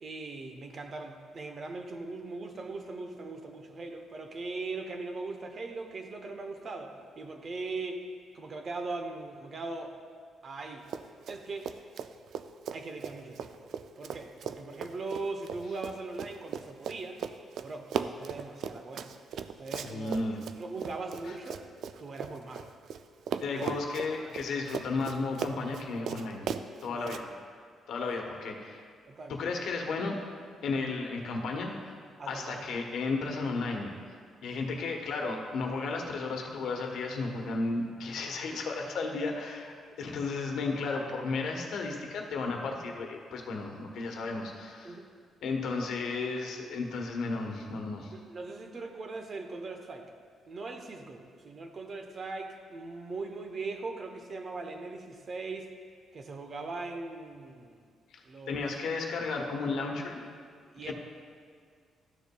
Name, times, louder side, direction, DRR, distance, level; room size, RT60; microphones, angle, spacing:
voice 1, 0.0-8.0 8.3-9.9 10.4-10.9 11.3-11.7 12.7-17.2 17.6-19.1 19.6-20.3 20.6-21.7 22.0-22.7 23.5-23.8 24.2-24.3 26.9-27.0 29.1-29.5 32.2-32.8 34.5-34.6 44.8-45.1 45.8-45.9 48.1-50.1 50.5-55.7 56.1-57.9 58.2-58.8 60.7-60.9, right 3 dB, 45° right, 4 dB, 0.8 m, -40 dB
Run, 10.8-11.4 11.6-23.0 23.3-27.2, right 7 dB, 70° right, 0.3 m, -37 dB
voice 2, 19.8-20.4 21.3-21.4 23.4-26.4 26.8-27.3 27.9-28.8 29.3-30.2 30.6-31.9 32.3-33.9 34.4-45.0 45.4-48.1 58.1-60.2 60.8-60.9, left 3 dB, 75° left, 2 dB, 1.1 m, -34 dB
13.0 x 6.9 x 2.3 m, 2.1 s
cardioid pair, 90°, 0 cm